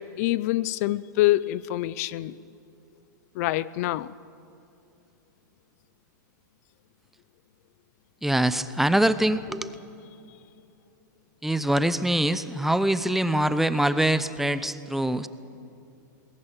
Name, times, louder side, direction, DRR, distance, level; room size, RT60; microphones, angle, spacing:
voice 1, 0.0-2.4 3.4-4.1, left 16 dB, 50° left, 20 dB, 0.5 m, -26 dB
voice 2, 8.2-9.7 11.4-15.3, right 1 dB, ahead, 13 dB, 0.6 m, -24 dB
21.5 x 17.5 x 9.0 m, 2.8 s
hypercardioid pair, 135°, 11 cm